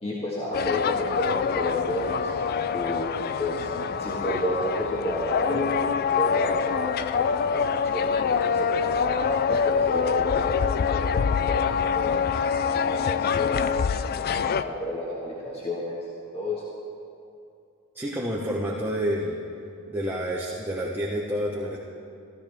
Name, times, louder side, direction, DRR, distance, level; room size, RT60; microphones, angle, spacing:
voice 1, 0.0-2.3 2.7-5.7 6.2-10.5 10.9-12.2 12.6-13.7 14.1-16.0 16.3-16.6, left 1 dB, 25° left, -5 dB, 1.6 m, -31 dB
sound 1, 0.5-14.6, left 6 dB, 45° left, 0.3 m, -25 dB
voice 2, 17.9-19.4 19.9-21.8, equal, 10° right, -4 dB, 0.9 m, -29 dB
14.5 x 14.5 x 3.4 m, 2.6 s
head